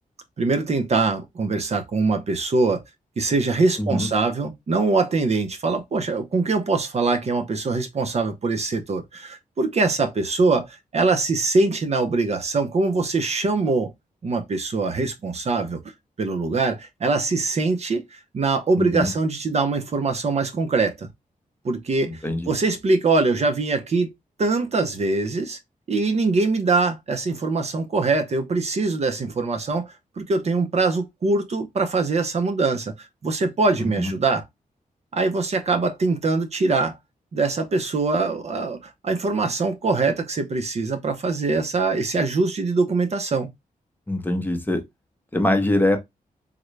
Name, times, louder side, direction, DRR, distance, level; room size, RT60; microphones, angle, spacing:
voice 1, 0.4-2.8 3.2-13.9 14.2-15.8 16.2-21.1 21.6-24.1 24.4-25.6 25.9-34.4 35.1-37.0 37.3-43.5, right 3 dB, 45° right, 0.6 m, -23 dB
voice 2, 18.8-19.1 22.1-22.5 33.8-34.1 44.1-44.8 45.3-46.0, left 1 dB, 15° left, 0.7 m, -23 dB
3.7 x 2.1 x 3.1 m
wide cardioid pair, 125°, 15 cm